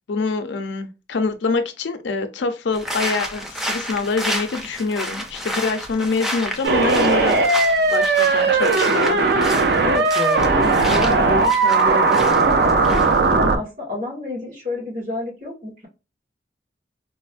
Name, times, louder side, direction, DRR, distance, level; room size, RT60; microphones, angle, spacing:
voice 1, 0.1-7.4 7.9-9.2, left 4 dB, 90° left, 0.5 m, -25 dB
sound 1, 2.7-13.3, equal, ahead, 0.4 m, -31 dB
sound 2, 6.6-13.6, right 3 dB, 65° right, 0.4 m, -17 dB
voice 2, 9.8-13.0 13.3-15.9, left 2 dB, 45° right, 1.8 m, -29 dB
4.0 x 2.0 x 2.4 m
head